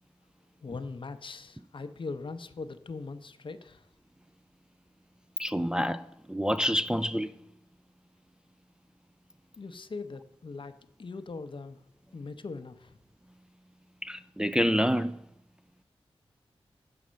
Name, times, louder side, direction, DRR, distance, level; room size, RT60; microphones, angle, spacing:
voice 1, 0.6-3.8 9.6-10.7 11.0-11.8 12.1-13.0, left 4 dB, 55° left, 0.6 m, -40 dB
voice 2, 5.4-7.3 14.0-15.2, equal, 10° right, 0.3 m, -28 dB
7.7 x 4.2 x 6.2 m
cardioid pair, 50°, 10 cm